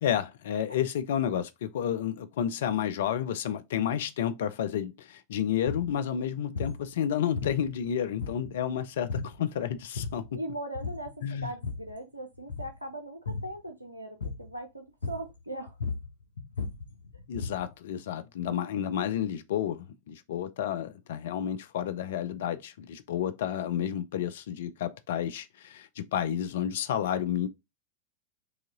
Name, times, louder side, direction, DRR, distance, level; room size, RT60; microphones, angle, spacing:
voice 1, 0.0-10.4 11.2-11.5 17.3-27.5, left 9 dB, 60° left, 0.4 m, -31 dB
sound 1, 5.7-5.9 6.5-6.8 7.3-7.9 8.2-8.7 9.1-9.4 9.8-10.3 10.7-11.1 11.4-12.0 12.4-12.8 13.2-13.6 14.2-14.5 15.0-15.4 15.7-17.7, left 4 dB, 75° left, 0.9 m, -36 dB
voice 2, 10.3-15.8, right 1 dB, 85° right, 0.5 m, -39 dB
4.9 x 2.9 x 3.7 m
figure-of-eight pair, 90°, 0 cm